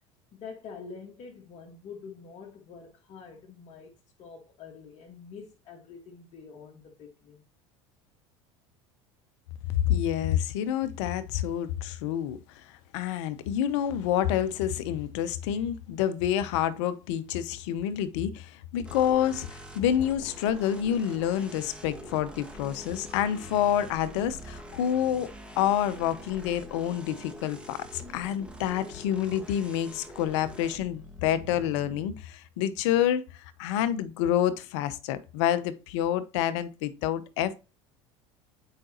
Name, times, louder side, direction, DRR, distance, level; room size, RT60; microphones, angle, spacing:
voice 1, 0.3-3.9 4.2-7.4, left 5 dB, 50° left, 1.6 m, -46 dB
voice 2, 9.7-12.6 12.9-25.3 25.6-37.5, left 10 dB, 70° left, 0.7 m, -28 dB
sound 1, 18.8-32.1, equal, 5° right, 1.5 m, -45 dB
7.5 x 5.0 x 2.9 m
hypercardioid pair, 85°, 15 cm